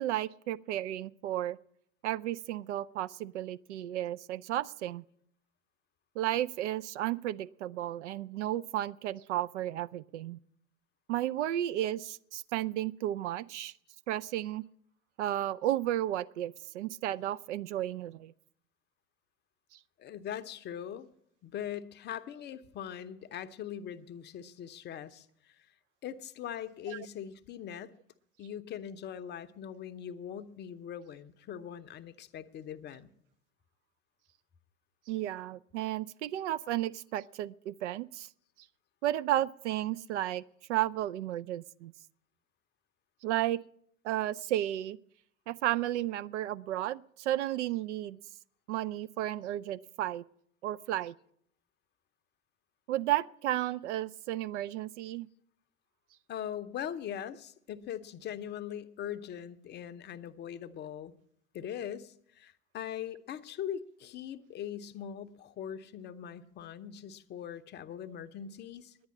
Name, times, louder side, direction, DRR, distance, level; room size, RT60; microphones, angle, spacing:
voice 1, 0.0-1.6 2.0-5.0 6.2-10.4 11.1-13.7 14.1-14.6 15.2-18.3 19.7-19.8 26.9-27.1 35.1-38.3 39.0-40.4 40.7-41.9 43.2-43.6 44.0-45.0 45.5-48.2 48.7-50.2 50.6-51.1 52.9-55.3, right 13 dB, 55° right, 15 dB, 0.5 m, -33 dB
voice 2, 20.0-21.1 21.4-25.7 26.0-27.9 28.4-33.1 56.3-61.1 61.5-69.0, left 9 dB, 25° left, 11 dB, 0.7 m, -41 dB
10.5 x 9.5 x 8.5 m, 0.69 s
figure-of-eight pair, 85°, 42 cm